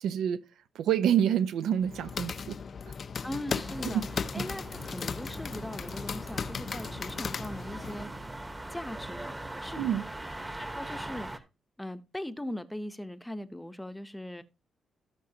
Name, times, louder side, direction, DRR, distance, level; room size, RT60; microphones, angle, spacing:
voice 1, 0.0-0.4 0.7-2.6 3.8-4.0 4.3-4.4 9.8-10.0, right 9 dB, 90° right, 0.8 m, -27 dB
sound 1, 1.8-8.0, left 6 dB, 50° left, 0.5 m, -36 dB
voice 2, 3.2-4.0 4.3-8.3 8.7-9.9 10.5-11.5 11.8-14.4, left 1 dB, 5° left, 0.8 m, -40 dB
sound 2, 3.6-11.4, right 1 dB, 15° right, 1.0 m, -41 dB
17.5 x 6.2 x 2.8 m
cardioid pair, 110°, 0 cm